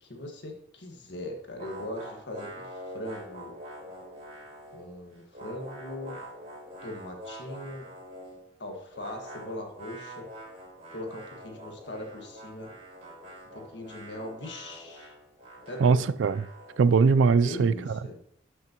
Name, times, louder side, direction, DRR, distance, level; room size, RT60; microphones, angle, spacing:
voice 1, 0.0-3.5 4.7-6.2 6.8-7.9 8.6-10.2 10.9-12.7 13.5-15.1 15.7-16.0 17.4-18.2, left 1 dB, 70° left, 1.6 m, -40 dB
sound 1, 1.6-4.9 5.1-8.4 8.9-16.9, equal, 35° right, 3.9 m, -45 dB
voice 2, 15.8-16.5 16.8-18.0, right 5 dB, 85° right, 0.4 m, -21 dB
12.0 x 6.4 x 2.9 m
head